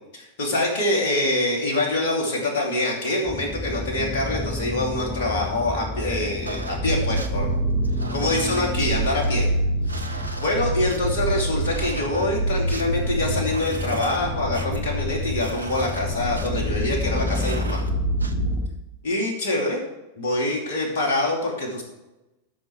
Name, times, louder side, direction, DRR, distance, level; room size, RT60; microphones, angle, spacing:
voice 1, 0.1-7.6 8.1-9.5 9.9-17.8 19.0-19.8 20.2-21.8, left 2 dB, 55° left, 0 dB, 2.7 m, -25 dB
sound 1, 3.3-18.7, left 2 dB, 10° left, 1.1 m, -31 dB
sound 2, 6.5-18.6, right 2 dB, 80° right, 0.8 m, -28 dB
12.5 x 6.1 x 4.6 m, 1.0 s
figure-of-eight pair, 90°, 0 cm